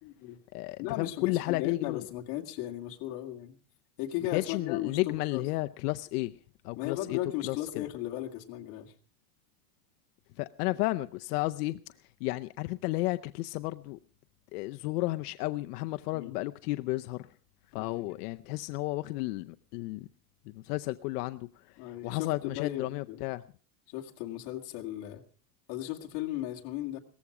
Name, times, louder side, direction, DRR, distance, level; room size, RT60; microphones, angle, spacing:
voice 1, 0.0-0.4 0.8-3.6 4.0-5.5 6.8-8.9 16.1-16.4 17.8-18.1 21.8-23.2 23.9-25.2 25.7-27.0, left 13 dB, 50° left, 2.1 m, -36 dB
voice 2, 0.5-2.0 4.3-6.3 6.6-7.2 7.4-7.8 10.4-11.8 12.2-14.0 14.5-17.3 17.7-20.1 20.5-21.5 22.0-23.4, left 19 dB, 90° left, 0.7 m, -32 dB
18.0 x 14.5 x 4.8 m
cardioid pair, 170°, 45 cm